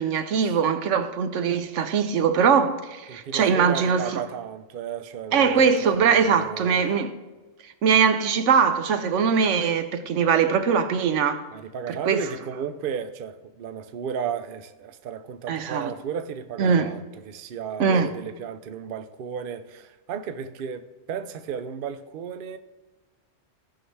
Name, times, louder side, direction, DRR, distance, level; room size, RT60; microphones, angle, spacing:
voice 1, 0.0-4.2 5.3-7.1 7.8-11.4 11.9-12.2 15.5-15.9 16.6-16.9 17.8-18.1, right 6 dB, 80° right, 1.0 m, -21 dB
voice 2, 3.1-6.8 11.5-22.6, right 7 dB, 55° right, 0.7 m, -34 dB
16.0 x 5.8 x 3.3 m
omnidirectional pair, 1.2 m